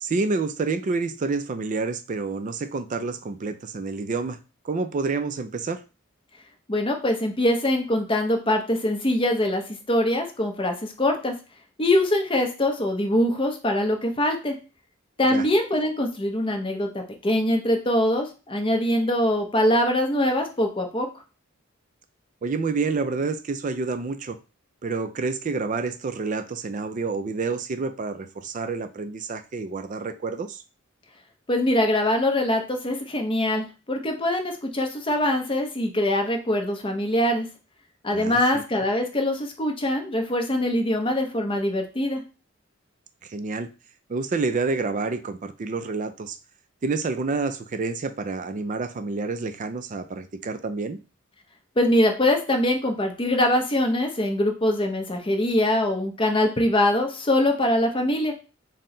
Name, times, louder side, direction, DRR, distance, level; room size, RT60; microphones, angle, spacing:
voice 1, 0.0-4.4 4.6-5.8 15.3-15.5 22.4-24.4 24.8-30.6 38.1-38.6 43.2-43.7 44.1-46.4 46.8-51.0, right 4 dB, 40° right, 11 dB, 0.4 m, -28 dB
voice 2, 6.7-9.6 9.9-11.3 11.8-14.5 15.2-21.1 31.5-37.5 38.0-42.2 51.8-58.3, left 1 dB, 25° left, 3 dB, 0.7 m, -23 dB
4.3 x 2.1 x 3.7 m, 0.32 s
head